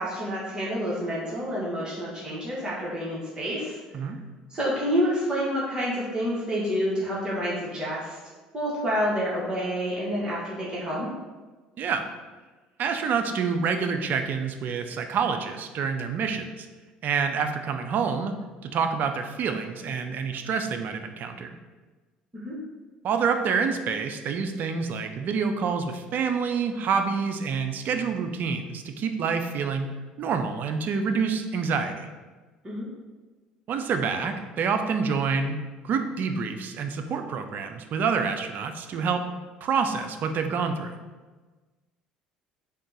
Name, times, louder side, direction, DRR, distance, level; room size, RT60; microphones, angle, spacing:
voice 1, 0.0-3.8 4.5-8.2 8.5-11.1 22.3-22.6 32.6-32.9, equal, 25° right, -7 dB, 1.2 m, -28 dB
voice 2, 12.8-16.7 17.0-18.3 18.6-21.6 23.0-29.9 30.2-32.1 33.7-35.6 35.8-39.2 39.6-41.0, right 5 dB, 50° right, 6 dB, 0.4 m, -27 dB
3.6 x 2.3 x 4.0 m, 1.3 s
hypercardioid pair, 65°, 4 cm